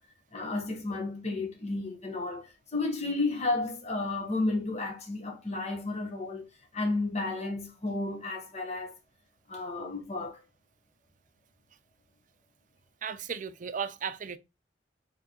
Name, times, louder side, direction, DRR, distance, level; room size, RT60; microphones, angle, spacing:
voice 1, 0.3-6.5 6.7-8.9 9.5-10.4, left 2 dB, 40° left, 1.2 m, -32 dB
voice 2, 13.0-14.4, right 7 dB, 45° right, 0.5 m, -35 dB
4.5 x 3.2 x 2.9 m
head